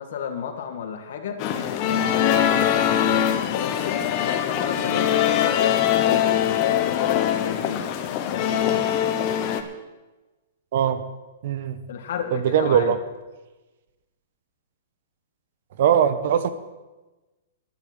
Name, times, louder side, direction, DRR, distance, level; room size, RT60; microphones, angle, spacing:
voice 1, 0.0-1.4 1.9-7.9 8.3-8.9 11.9-12.9, left 7 dB, 65° left, 5 dB, 2.1 m, -32 dB
sound 1, 1.4-9.6, left 10 dB, 35° left, 1.1 m, -22 dB
voice 2, 10.7-11.0 11.4-11.8 12.3-13.0 15.8-16.5, right 8 dB, 55° right, 11 dB, 1.1 m, -20 dB
11.5 x 7.0 x 9.6 m, 1.2 s
hypercardioid pair, 155°, 0 cm